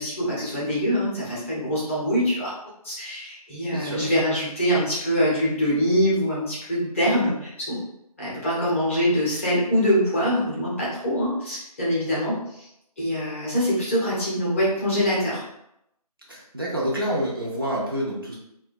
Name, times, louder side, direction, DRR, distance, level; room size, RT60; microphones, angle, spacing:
voice 1, 0.0-2.5 2.8-7.8 8.2-12.7 13.0-15.4, equal, 20° left, -7 dB, 0.6 m, -24 dB
voice 2, 3.7-4.1 16.3-18.3, equal, 35° right, -4 dB, 0.5 m, -28 dB
2.4 x 2.2 x 2.4 m, 0.79 s
figure-of-eight pair, 155°, 20 cm